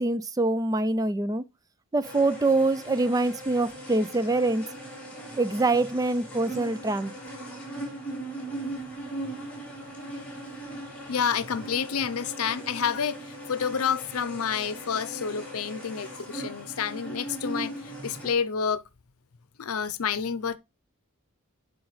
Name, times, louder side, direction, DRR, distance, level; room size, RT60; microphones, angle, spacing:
voice 1, 0.0-1.4 1.9-4.6 5.4-7.1, right 2 dB, 15° right, 0.3 m, -25 dB
sound 1, 2.0-18.3, right 1 dB, 5° left, 2.8 m, -39 dB
voice 2, 11.1-18.8 19.6-20.6, left 7 dB, 90° left, 0.6 m, -29 dB
11.0 x 4.9 x 3.2 m
head